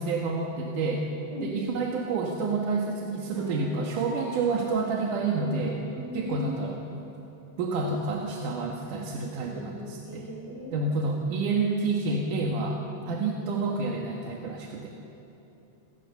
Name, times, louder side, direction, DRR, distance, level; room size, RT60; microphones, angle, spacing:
voice 1, 0.0-1.1 1.4-5.8 6.1-6.8 7.6-10.3 10.7-14.9, right 3 dB, 85° right, 0 dB, 3.1 m, -29 dB
voice 2, 1.3-1.6 5.9-6.5 9.4-10.9 13.0-13.1, left 1 dB, 60° right, -2 dB, 6.9 m, -38 dB
sound 1, 3.3-7.1 7.6-7.9, right 2 dB, 45° right, 3.2 m, -48 dB
28.5 x 18.5 x 7.0 m, 2.9 s
omnidirectional pair, 3.5 m